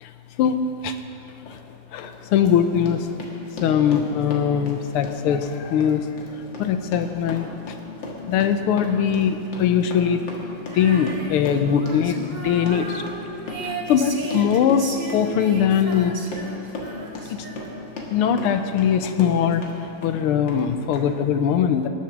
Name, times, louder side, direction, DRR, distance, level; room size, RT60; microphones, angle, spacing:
Run, 1.4-1.6 2.0-19.8 20.0-20.6 20.9-21.0, left 2 dB, 60° left, 2.4 m, -37 dB
voice 1, 1.9-3.1 3.6-6.1 6.4-7.5 8.3-10.2 10.7-13.0 13.6-16.2 17.3-17.5 18.1-19.6 20.0-21.9, left 8 dB, 85° left, 8 dB, 1.7 m, -21 dB
Female singing, 10.7-18.0, right 2 dB, 35° right, 0.7 m, -35 dB
20.5 x 7.4 x 6.0 m, 2.9 s
omnidirectional pair, 2.4 m